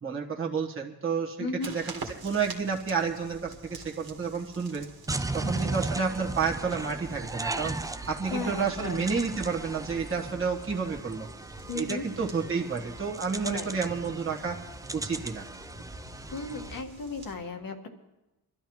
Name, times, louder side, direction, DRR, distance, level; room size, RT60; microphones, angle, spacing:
voice 1, 0.0-1.9 2.2-4.9 5.3-7.8 8.1-11.3 11.7-14.6 14.9-15.4, right 5 dB, 35° right, -2 dB, 1.5 m, -30 dB
voice 2, 1.4-1.8 5.4-5.8 8.3-9.0 11.7-12.1 13.4-13.7 16.3-17.9, left 3 dB, 60° left, 4 dB, 1.8 m, -35 dB
sound 1, 1.6-17.4, right 3 dB, 65° right, 1.9 m, -47 dB
sound 2, 5.1-16.8, right 2 dB, 10° right, 0.4 m, -37 dB
24.5 x 12.5 x 3.1 m, 1.0 s
cardioid pair, 100°, 38 cm